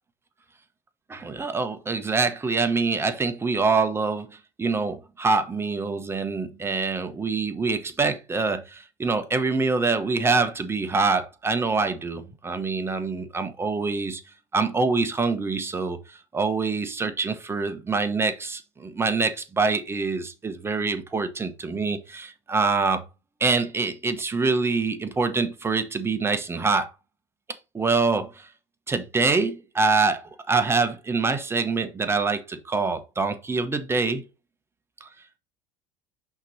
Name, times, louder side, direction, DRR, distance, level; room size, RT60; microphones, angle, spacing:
voice 1, 1.1-4.3 4.6-14.2 14.5-23.0 23.4-26.9 27.7-28.5 28.9-34.2 35.0-35.1, right 4 dB, 20° right, 0.9 m, -25 dB
5.7 x 3.0 x 5.4 m
supercardioid pair, 100°, 12 cm